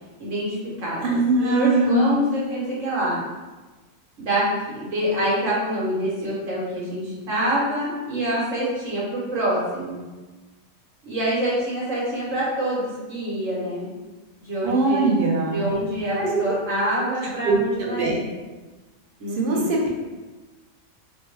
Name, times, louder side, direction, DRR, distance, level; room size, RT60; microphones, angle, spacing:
voice 1, 0.2-3.2 4.2-10.0 11.0-13.9 14.4-15.1 15.5-18.2 19.2-19.7, right 1 dB, 70° right, -7 dB, 1.5 m, -26 dB
voice 2, 1.0-2.1 14.6-15.7 16.1-16.4 17.4-18.2 19.4-19.9, right 2 dB, 55° right, -2 dB, 0.6 m, -21 dB
3.3 x 2.1 x 3.2 m, 1.2 s
omnidirectional pair, 1.4 m